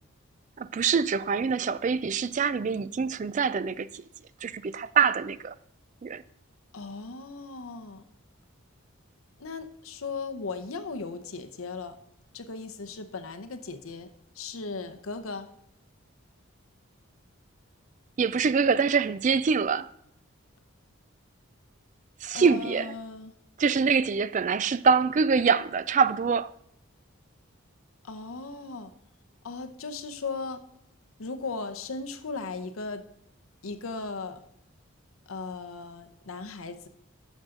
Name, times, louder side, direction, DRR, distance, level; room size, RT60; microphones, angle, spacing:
voice 1, 0.6-4.0 4.4-5.5 6.0-6.2 18.2-19.9 22.2-23.0 23.6-26.5, right 5 dB, 35° right, 0.3 m, -25 dB
voice 2, 6.7-8.0 9.4-12.0 12.3-15.5 22.3-23.3 28.0-28.9 29.4-30.6 31.2-33.0 33.6-34.4 35.3-36.9, left 4 dB, 80° left, 0.8 m, -37 dB
11.5 x 6.6 x 3.7 m
head